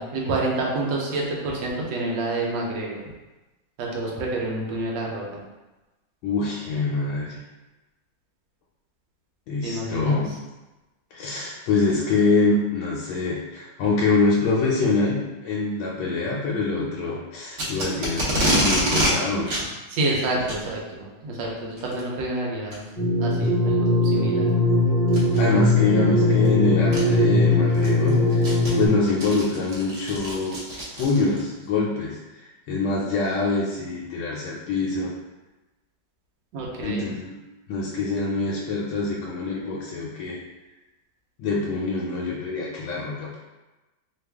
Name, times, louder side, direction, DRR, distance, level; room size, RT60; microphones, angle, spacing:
voice 1, 0.0-3.0 3.8-5.4 9.6-10.2 19.9-22.8 23.2-24.5 36.5-37.1, right 2 dB, 75° right, -2 dB, 1.3 m, -28 dB
voice 2, 6.2-7.4 9.5-10.3 11.1-19.5 25.4-28.4 28.7-30.5 31.0-32.2 32.7-35.1 36.8-37.4 37.7-40.4 41.4-43.4, left 3 dB, 90° left, -4 dB, 1.4 m, -25 dB
Packing tape duct tape, 17.5-19.1 19.5-19.6 20.4-20.6 21.8-22.0 22.7-22.8 23.4-23.5 25.1-25.4 26.4-26.5 26.9-27.0 27.5-31.4, right 1 dB, 55° right, 0.7 m, -26 dB
sound 1, 23.0-28.9, left 1 dB, 15° left, 0.8 m, -20 dB
3.3 x 2.4 x 3.4 m, 1.1 s
omnidirectional pair, 2.2 m